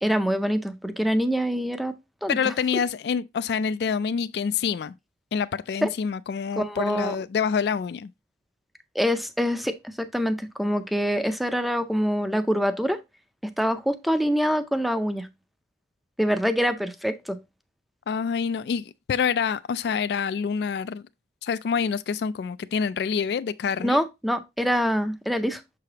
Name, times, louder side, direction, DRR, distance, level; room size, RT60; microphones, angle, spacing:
voice 1, 0.0-1.9 2.2-2.5 5.8-5.9 6.6-7.2 8.9-13.0 13.6-15.3 16.2-17.4 23.8-25.6, equal, ahead, 0.5 m, -25 dB
voice 2, 2.3-4.9 5.3-8.1 18.1-21.0 21.4-24.0, left 6 dB, 65° left, 0.3 m, -27 dB
6.8 x 4.8 x 2.8 m
head